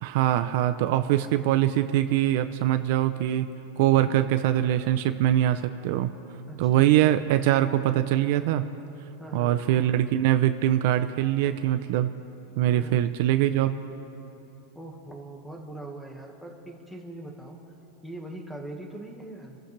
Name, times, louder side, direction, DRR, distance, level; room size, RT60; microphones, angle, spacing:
voice 1, 0.0-3.5 3.8-6.1 6.6-8.6 9.3-12.1 12.6-13.7, right 13 dB, 55° right, 9 dB, 0.6 m, -23 dB
voice 2, 3.9-4.3 6.5-7.0 9.2-9.6 12.7-13.1 14.7-17.6 18.0-19.6, right 1 dB, ahead, 1 dB, 1.7 m, -41 dB
28.0 x 14.0 x 3.3 m, 2.9 s
supercardioid pair, 160°, 0 cm